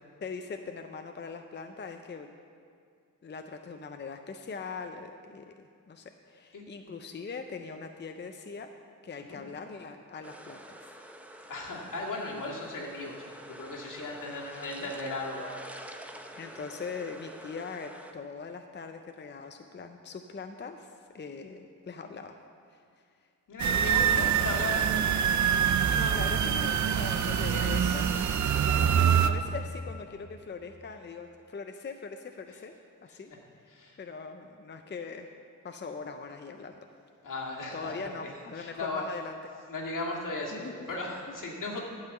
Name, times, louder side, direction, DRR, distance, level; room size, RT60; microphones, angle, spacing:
voice 1, 0.2-2.3 3.2-8.7 9.0-11.0 14.2-14.9 16.4-22.4 22.7-22.8 25.7-28.1 28.5-32.8 33.0-33.3 34.0-35.3 35.6-36.8 37.7-39.4 40.5-40.9, left 5 dB, 35° left, 6 dB, 0.5 m, -41 dB
sound 1, 10.2-18.1, right 1 dB, 5° right, 0.6 m, -47 dB
voice 2, 11.5-13.1 13.5-15.9 23.5-25.2 26.9-27.4 28.5-28.9 33.1-33.2 33.7-34.0 37.2-38.3 38.6-39.0 39.7-41.8, left 2 dB, 75° left, -3 dB, 2.1 m, -37 dB
sound 2, 23.6-29.3, right 8 dB, 60° right, 0.5 m, -25 dB
12.0 x 5.7 x 8.0 m, 2.3 s
wide cardioid pair, 150°, 32 cm